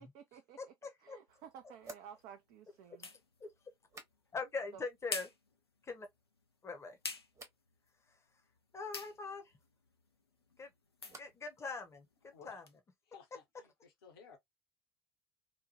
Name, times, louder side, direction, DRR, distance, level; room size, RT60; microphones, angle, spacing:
voice 1, 0.0-0.7 1.0-3.1 4.7-4.8, right 8 dB, 55° right, 0.5 m, -54 dB
voice 2, 0.6-1.2 3.4-3.5 4.3-5.3 5.8-6.1 6.6-7.0 8.7-9.5 10.6-10.7 11.2-12.6, left 4 dB, 20° left, 0.8 m, -42 dB
sound 1, 1.3-12.8, left 3 dB, 90° left, 0.4 m, -50 dB
sound 2, 1.8-4.6 4.9-5.5 5.9-6.5 7.3-7.7 10.1-11.5 11.8-12.4, right 2 dB, 25° right, 1.0 m, -58 dB
voice 3, 13.1-14.4, left 7 dB, 70° left, 0.9 m, -57 dB
2.9 x 2.2 x 2.7 m
figure-of-eight pair, 60°, 13 cm